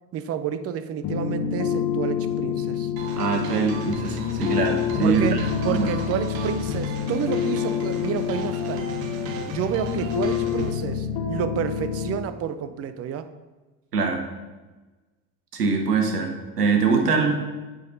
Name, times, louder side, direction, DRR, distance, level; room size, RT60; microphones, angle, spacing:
voice 1, 0.1-2.9 5.0-8.9 9.5-13.3, right 8 dB, 35° right, 12 dB, 0.5 m, -30 dB
sound 1, 1.0-12.2, left 8 dB, 50° left, 1.2 m, -27 dB
sound 2, 3.0-10.7, right 5 dB, 50° right, 0.9 m, -37 dB
voice 2, 3.2-5.9 13.9-14.2 15.5-16.3 16.6-17.3, right 4 dB, 90° right, 3 dB, 0.9 m, -23 dB
8.3 x 3.8 x 3.9 m, 1.2 s
hypercardioid pair, 65°, 46 cm